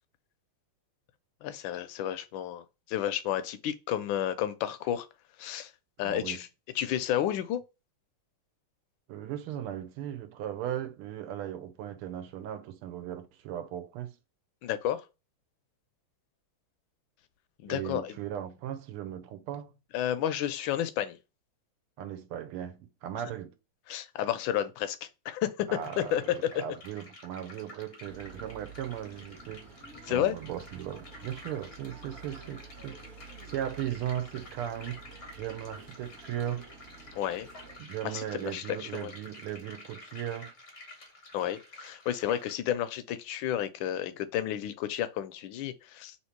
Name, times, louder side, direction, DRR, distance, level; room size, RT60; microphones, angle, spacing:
voice 1, 1.4-5.1 5.4-5.7 6.0-6.5 6.7-7.6 14.6-15.0 17.6-18.2 19.9-21.2 23.9-25.7 26.0-26.2 30.1-30.4 37.1-37.5 38.1-39.1 41.3-46.2, left 11 dB, 75° left, 1.2 m, -31 dB
voice 2, 6.0-6.4 9.1-14.2 17.7-19.7 22.0-23.5 25.7-29.7 30.1-33.0 33.5-35.0 35.3-36.7 37.8-40.5, right 10 dB, 80° right, 1.5 m, -37 dB
sound 1, 25.8-42.5, left 2 dB, 55° left, 0.7 m, -50 dB
sound 2, 28.1-37.8, right 4 dB, 45° right, 0.9 m, -50 dB
3.5 x 2.9 x 4.4 m
omnidirectional pair, 2.4 m